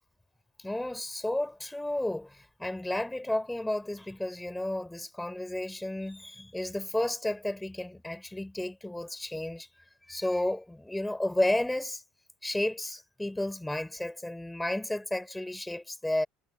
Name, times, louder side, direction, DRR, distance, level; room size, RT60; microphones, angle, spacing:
voice 1, 0.6-9.7 10.1-12.0 12.4-16.3, left 1 dB, 5° left, 6.5 m, -32 dB
figure-of-eight pair, 65°, 0 cm